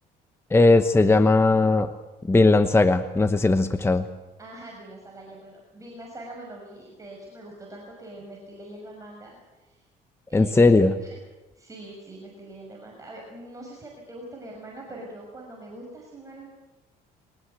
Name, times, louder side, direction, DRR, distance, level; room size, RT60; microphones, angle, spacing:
voice 1, 0.5-1.9 2.3-4.1 10.3-10.9, left 3 dB, 15° left, 10 dB, 1.0 m, -18 dB
voice 2, 4.4-9.8 10.3-11.2 11.6-16.5, right 1 dB, 20° right, -1 dB, 6.2 m, -43 dB
22.5 x 19.5 x 8.2 m, 1.1 s
cardioid pair, 110°, 17 cm